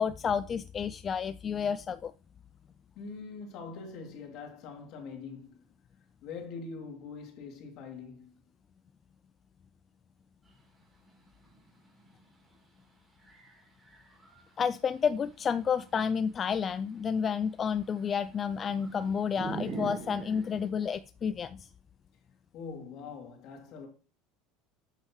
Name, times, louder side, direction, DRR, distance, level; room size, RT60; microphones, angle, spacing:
voice 1, 0.0-2.1 14.6-21.7, left 7 dB, 30° left, 0.3 m, -30 dB
voice 2, 2.9-5.7 6.2-8.3 22.5-23.9, left 5 dB, 55° left, 2.7 m, -43 dB
sound 1, 10.5-10.6 10.8-12.7 13.2-14.7 15.4-20.7, right 2 dB, 10° right, 3.4 m, -43 dB
8.3 x 8.3 x 3.1 m
supercardioid pair, 130°, 0 cm